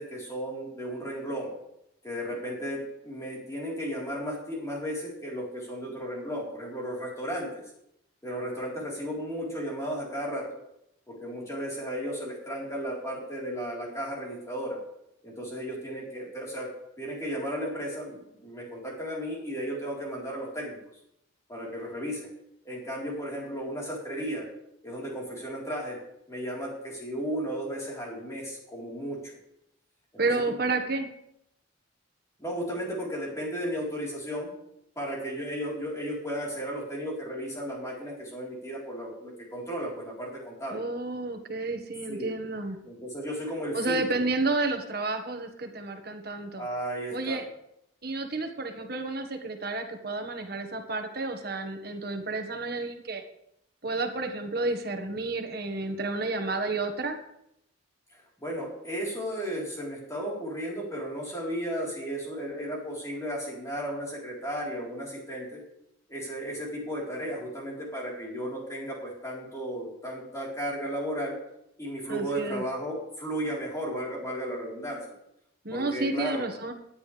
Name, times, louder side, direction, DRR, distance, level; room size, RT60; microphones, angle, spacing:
voice 1, 0.0-1.5 2.0-7.5 8.2-10.5 11.1-14.8 15.2-16.7 17.0-20.8 21.5-22.3 22.6-24.5 24.8-26.0 26.3-29.4 30.2-30.6 32.4-34.5 35.0-40.9 42.1-42.3 42.8-44.0 46.6-47.4 58.1-65.6 66.1-71.4 71.8-75.0 75.7-76.4, equal, 15° left, -4 dB, 4.0 m, -34 dB
voice 2, 30.2-31.1 40.7-42.8 43.7-46.7 47.1-47.4 48.0-53.2 53.8-57.2 72.1-72.6 75.6-76.7, right 3 dB, 50° right, 5 dB, 1.6 m, -31 dB
18.5 x 10.0 x 3.4 m, 0.79 s
head